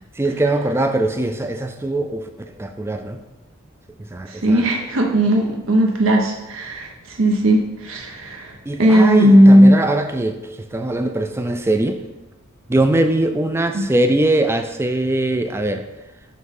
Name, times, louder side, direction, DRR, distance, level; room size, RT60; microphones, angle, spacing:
voice 1, 0.2-2.3 2.6-3.2 4.1-4.6 8.7-12.0 12.7-15.8, right 2 dB, 10° right, 7 dB, 0.4 m, -21 dB
voice 2, 4.3-9.8 13.7-13.8, equal, 70° right, 1 dB, 0.7 m, -15 dB
5.9 x 3.1 x 5.3 m, 1.0 s
head